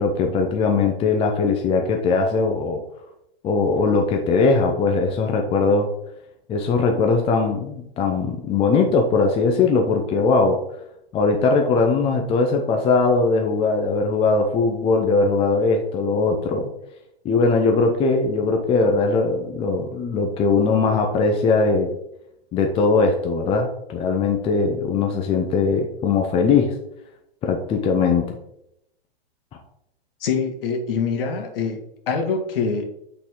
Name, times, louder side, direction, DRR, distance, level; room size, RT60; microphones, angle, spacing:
voice 1, 0.0-2.8 3.4-5.9 6.5-10.6 11.1-16.7 17.2-21.9 22.5-26.7 27.4-28.4, left 4 dB, 15° left, 3 dB, 0.7 m, -20 dB
voice 2, 30.2-31.8 32.1-32.8, left 5 dB, 60° left, 3 dB, 1.7 m, -24 dB
8.3 x 4.2 x 3.7 m, 0.80 s
hypercardioid pair, 130°, 32 cm